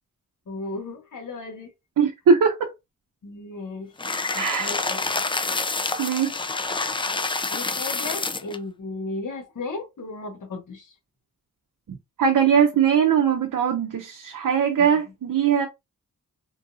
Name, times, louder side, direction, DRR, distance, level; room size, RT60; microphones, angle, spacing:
voice 1, 0.5-1.7 3.2-3.9 4.3-5.1 7.5-10.9 14.8-14.9, left 3 dB, 75° left, 1.3 m, -35 dB
voice 2, 2.0-2.7 4.4-4.7 6.0-6.4 12.2-15.7, right 7 dB, 85° right, 0.6 m, -20 dB
sound 1, 4.0-8.6, left 3 dB, 15° left, 0.3 m, -27 dB
3.7 x 2.6 x 2.4 m
wide cardioid pair, 80°, 31 cm